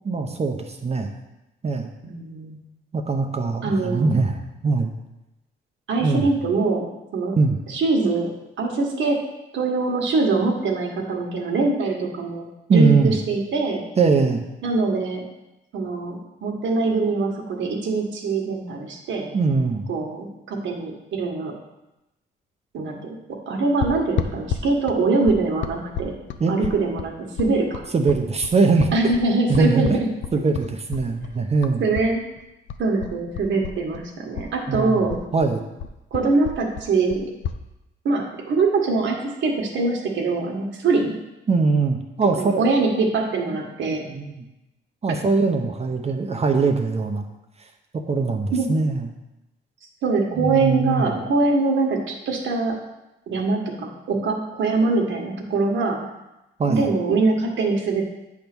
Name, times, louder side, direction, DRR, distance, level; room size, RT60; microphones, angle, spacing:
voice 1, 0.0-1.1 1.6-1.9 2.9-4.9 6.0-6.3 7.4-7.6 12.7-13.2 14.0-14.4 19.3-19.8 26.4-26.5 27.9-28.9 29.5-29.9 30.3-31.8 34.7-35.0 35.3-35.7 41.5-42.6 43.9-44.4 45.0-47.2 47.9-49.1 50.3-51.1 56.6-56.8, right 4 dB, 30° right, 4 dB, 0.9 m, -21 dB
voice 2, 2.0-2.6 3.6-4.2 5.9-6.8 7.1-7.3 7.7-8.3 8.6-9.2 9.5-13.8 14.6-15.3 15.7-19.3 19.9-21.5 22.7-23.0 23.5-26.1 26.5-27.8 28.9-30.1 31.8-32.2 32.8-35.2 36.1-37.3 38.0-41.1 42.4-44.0 48.5-48.7 50.0-52.8 53.3-56.0 56.7-58.0, right 3 dB, 70° right, 1 dB, 1.6 m, -23 dB
sound 1, 23.8-32.1 32.4-34.1 34.3-37.6, left 7 dB, 70° left, 0.6 m, -31 dB
8.4 x 3.6 x 6.1 m, 0.95 s
cardioid pair, 90°, 20 cm